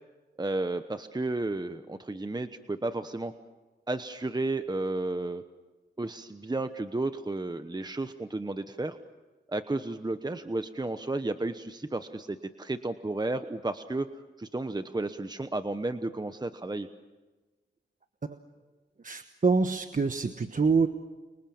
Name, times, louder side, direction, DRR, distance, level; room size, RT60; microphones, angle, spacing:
voice 1, 0.4-3.3 3.9-5.4 6.0-9.0 9.5-14.1 14.4-16.9, right 2 dB, 20° right, 9 dB, 1.1 m, -32 dB
voice 2, 19.0-20.9, right 4 dB, 45° right, 8 dB, 1.2 m, -26 dB
30.0 x 25.0 x 7.2 m, 1.2 s
cardioid pair, 60°, 20 cm